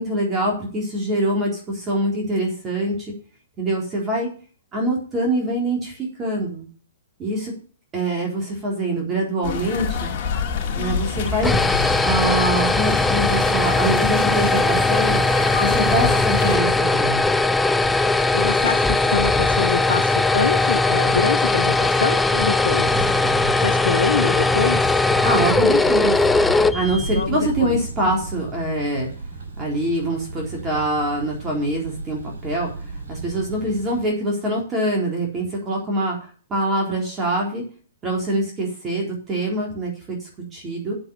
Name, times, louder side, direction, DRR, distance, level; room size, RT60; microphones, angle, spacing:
voice 1, 0.0-3.1 3.6-4.3 4.7-6.7 7.2-7.5 7.9-10.1 10.8-11.6 12.0-15.2 15.6-17.3 25.2-26.2 26.7-29.1 29.6-32.7 33.1-36.2 36.5-37.6 38.0-40.2 40.5-40.9, right 1 dB, 20° right, -1 dB, 3.8 m, -24 dB
sound 1, 9.4-16.6, left 7 dB, 45° left, 2.1 m, -27 dB
sound 2, 11.2-27.4, left 2 dB, 5° left, 0.5 m, -19 dB
voice 2, 18.3-22.9 23.6-24.8 27.1-27.8, left 6 dB, 75° left, 8 dB, 0.7 m, -25 dB
Thunder, 22.7-34.1, right 3 dB, 70° right, 5.6 m, -34 dB
8.1 x 7.8 x 7.0 m, 0.41 s
hypercardioid pair, 125°, 0 cm